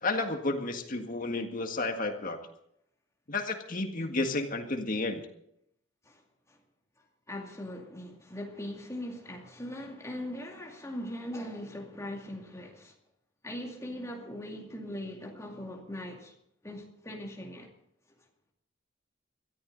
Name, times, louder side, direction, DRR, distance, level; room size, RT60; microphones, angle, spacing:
voice 1, 0.0-2.4 3.3-5.2, left 2 dB, 40° left, 1.8 m, -31 dB
voice 2, 7.3-12.9 13.4-16.3 16.6-17.7, left 1 dB, 15° left, 2.4 m, -40 dB
21.5 x 14.0 x 4.0 m
head